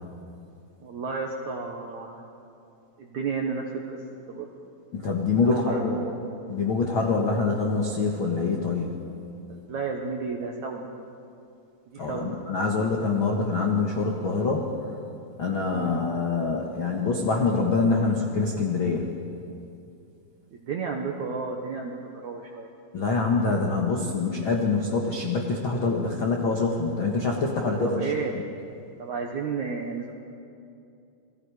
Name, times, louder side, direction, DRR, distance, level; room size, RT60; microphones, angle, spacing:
voice 1, 0.8-2.3 3.0-4.0 4.3-4.5 5.4-6.1 9.5-10.9 11.9-12.4 15.6-16.1 20.6-22.7 27.8-28.3 29.0-30.1, right 5 dB, 70° right, 1 dB, 1.8 m, -32 dB
voice 2, 4.9-6.0 6.5-9.0 12.0-14.7 15.4-19.1 22.9-28.0, left 4 dB, 80° left, 0 dB, 1.1 m, -25 dB
29.5 x 21.0 x 4.9 m, 2.6 s
omnidirectional pair, 5.0 m